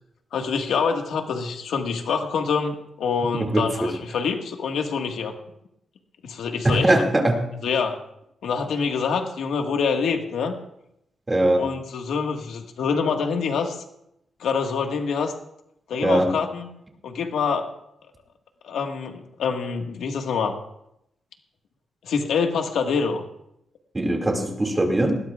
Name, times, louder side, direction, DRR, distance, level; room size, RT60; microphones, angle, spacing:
voice 1, 0.3-5.3 6.2-6.9 7.6-7.9 8.4-10.5 11.6-13.8 14.4-15.3 15.9-16.7 17.0-17.7 18.6-20.6 22.0-23.2, left 5 dB, 90° left, 3 dB, 1.7 m, -25 dB
voice 2, 3.3-3.9 6.6-7.4 11.3-11.6 16.0-16.3 23.9-25.2, right 1 dB, 15° right, 2 dB, 2.3 m, -21 dB
20.0 x 18.0 x 2.4 m, 0.80 s
wide cardioid pair, 155°, 0 cm